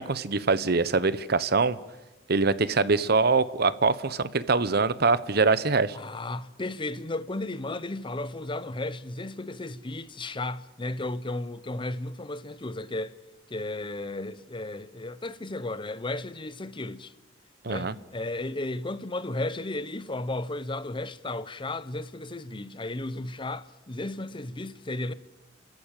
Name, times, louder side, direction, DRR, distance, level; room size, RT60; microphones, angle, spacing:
voice 1, 0.0-1.8 2.3-6.0 17.6-17.9, right 4 dB, 60° right, 1.0 m, -24 dB
voice 2, 5.9-13.1 13.5-17.1 17.7-25.1, left 2 dB, 25° left, 0.9 m, -34 dB
30.0 x 14.0 x 9.0 m
head